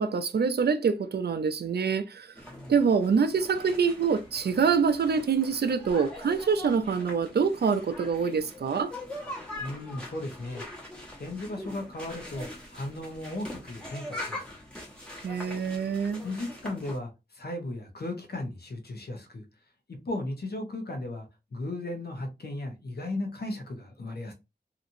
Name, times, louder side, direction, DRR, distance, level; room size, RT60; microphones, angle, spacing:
voice 1, 0.0-2.3 2.7-8.9 15.2-16.2, right 6 dB, 70° right, 0.4 m, -25 dB
sound 1, 2.3-17.0, left 1 dB, 5° left, 1.1 m, -42 dB
voice 2, 9.6-10.6 11.2-14.6 16.2-19.4 20.0-24.3, left 2 dB, 65° left, 0.9 m, -36 dB
2.9 x 2.5 x 2.6 m
wide cardioid pair, 85°, 17 cm